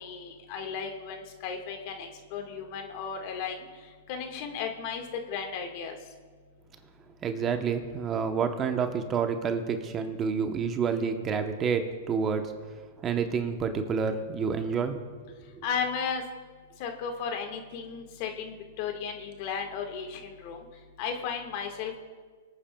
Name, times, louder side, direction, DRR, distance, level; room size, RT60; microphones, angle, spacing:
voice 1, 0.0-3.6 4.1-5.9 15.6-16.2 16.8-20.6 21.0-22.0, left 6 dB, 50° left, 3 dB, 1.7 m, -34 dB
voice 2, 7.2-12.5 13.0-15.0 15.6-15.7, right 6 dB, 25° right, 7 dB, 0.9 m, -29 dB
24.5 x 8.7 x 2.3 m, 1.5 s
hypercardioid pair, 120°, 0 cm